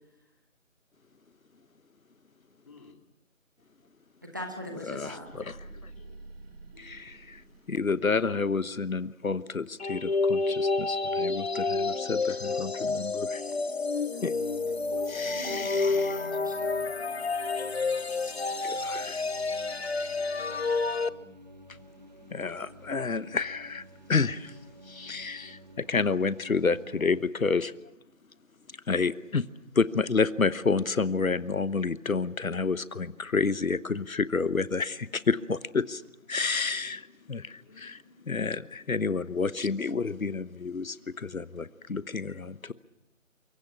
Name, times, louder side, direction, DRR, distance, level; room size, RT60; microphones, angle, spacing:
voice 1, 2.7-3.0 5.1-6.3 6.7-7.2 17.0-17.6 19.4-22.7 35.1-36.0 36.7-38.5, left 4 dB, 25° left, 2.5 m, -58 dB
voice 2, 4.2-5.3 14.9-16.9, equal, 15° right, 1.1 m, -41 dB
voice 3, 4.9-5.6 6.8-7.4 7.7-13.4 14.2-14.3 15.1-16.3 17.6-17.7 18.6-19.2 22.3-24.5 24.9-27.7 28.9-29.5 29.7-36.0 36.3-42.7, left 4 dB, 90° left, 1.1 m, -30 dB
sound 1, 5.1-8.4, right 2 dB, 50° right, 2.2 m, -49 dB
sound 2, 9.8-21.1, left 3 dB, 50° left, 0.9 m, -29 dB
sound 3, 14.3-27.2, equal, 30° right, 1.0 m, -51 dB
27.5 x 23.0 x 6.0 m
figure-of-eight pair, 165°, 40 cm